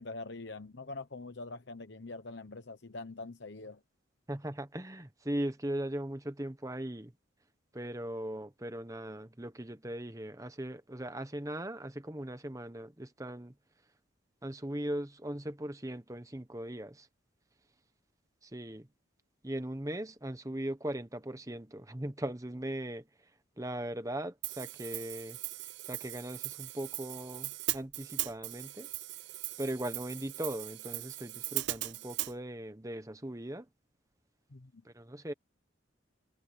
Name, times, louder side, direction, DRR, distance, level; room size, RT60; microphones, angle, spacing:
voice 1, 0.0-3.8 34.5-34.8, left 3 dB, 60° left, 1.0 m, -44 dB
voice 2, 4.3-7.1 7.7-13.5 14.4-17.1 18.4-18.9 19.4-23.3 23.6-25.4 25.8-28.9 29.6-33.7 34.8-35.3, right 1 dB, 15° right, 1.1 m, -39 dB
Hi-hat, 24.4-32.3, right 17 dB, 60° right, 0.4 m, -39 dB
head